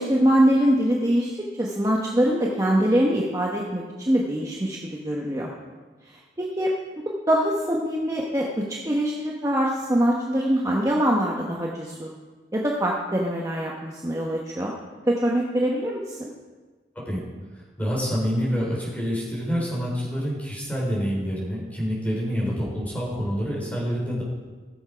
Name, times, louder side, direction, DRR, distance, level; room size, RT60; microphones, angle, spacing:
voice 1, 0.0-1.3 1.6-5.5 6.4-6.7 7.3-12.1 12.5-14.7 15.1-16.3, equal, 20° right, -3 dB, 1.0 m, -23 dB
voice 2, 17.8-24.2, equal, 10° left, -5 dB, 3.8 m, -27 dB
15.5 x 7.2 x 5.1 m, 1.4 s
head